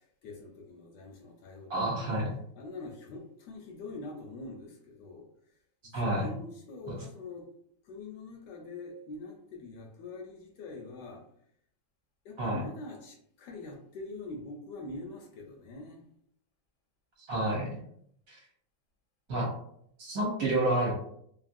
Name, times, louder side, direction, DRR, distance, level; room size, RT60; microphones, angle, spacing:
voice 1, 0.0-2.1 2.6-5.3 5.8-7.5 7.8-11.2 12.2-16.0, left 3 dB, 75° left, 1 dB, 1.1 m, -44 dB
voice 2, 1.7-2.3 5.9-6.3 6.9-7.0 12.4-12.6 17.2-17.8 18.3-18.4 19.3-19.5 20.0-20.9, right 1 dB, 55° right, -3 dB, 1.1 m, -29 dB
2.9 x 2.6 x 2.5 m, 0.68 s
omnidirectional pair, 2.0 m